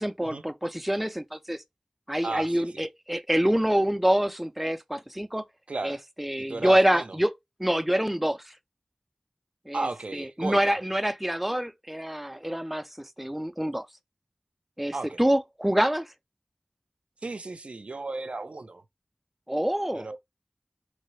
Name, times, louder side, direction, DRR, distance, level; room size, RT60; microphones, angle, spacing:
voice 1, 0.0-1.6 2.1-5.4 5.8-7.3 7.6-8.5 9.7-9.9 10.1-13.9 14.8-16.1 19.5-20.1, equal, 5° right, 0.3 m, -26 dB
voice 2, 2.2-2.8 5.7-6.0 6.4-7.2 9.7-10.8 14.9-15.2 17.2-18.8 19.9-20.2, right 3 dB, 75° right, 0.4 m, -34 dB
3.1 x 2.0 x 3.1 m
wide cardioid pair, 50°, 2 cm